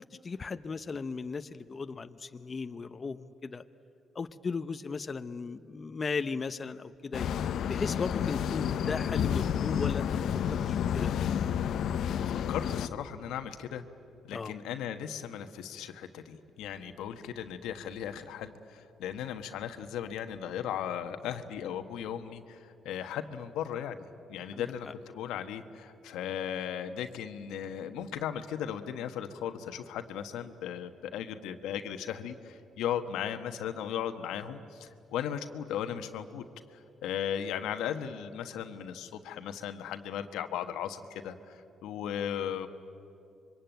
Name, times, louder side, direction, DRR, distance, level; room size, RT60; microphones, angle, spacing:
voice 1, 0.0-3.6 4.1-7.3 7.7-11.1 14.3-14.6 24.5-24.9, left 4 dB, 35° left, 10 dB, 0.7 m, -36 dB
sound 1, 7.1-12.9, left 8 dB, 70° left, 0.7 m, -30 dB
voice 2, 12.3-13.8 14.2-24.9 25.1-36.4 37.0-42.7, left 9 dB, 90° left, 8 dB, 1.3 m, -37 dB
26.5 x 24.0 x 9.2 m, 2.7 s
cardioid pair, 90°, 0 cm